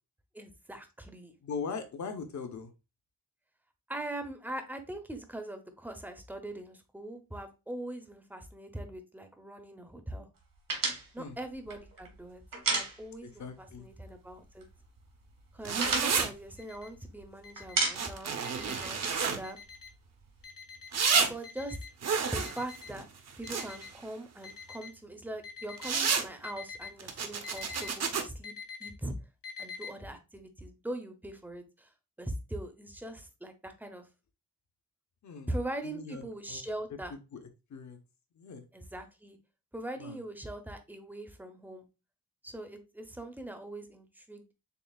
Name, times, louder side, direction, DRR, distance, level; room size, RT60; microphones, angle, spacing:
voice 1, 0.3-1.3 3.9-10.3 11.1-12.4 12.7-14.7 15.5-19.6 21.2-21.8 22.3-23.1 23.4-28.5 28.8-29.1 29.6-31.9 32.2-34.1 35.5-37.1 38.7-39.4 39.7-41.9 42.4-44.5, right 1 dB, 5° right, 6 dB, 0.5 m, -41 dB
voice 2, 1.4-2.7 11.2-11.4 13.2-13.9 35.2-35.5 35.8-36.6 37.1-37.4 37.7-38.0 38.3-38.6 40.0-40.2, left 5 dB, 55° left, 7 dB, 0.7 m, -40 dB
sound 1, 10.7-13.5 13.7-13.9 14.2-14.9 15.2-17.2 17.6-18.3 18.6-20.4, right 3 dB, 75° right, 1.3 m, -34 dB
sound 2, 15.6-16.3 17.9-19.4 20.9-21.3 22.0-23.9 25.8-26.3 27.0-28.2, right 5 dB, 50° right, 0.6 m, -30 dB
Alarm, 16.6-16.9 17.4-17.9 18.4-18.9 19.4-19.9 20.4-20.9 21.4-21.9 22.4-22.9 23.4-23.9 24.4-24.9 25.4-25.9 26.4-26.9 27.4-27.9 28.4-28.9 29.4-29.9, left 6 dB, 80° left, 1.1 m, -45 dB
6.7 x 2.4 x 2.3 m, 0.28 s
wide cardioid pair, 170°, 34 cm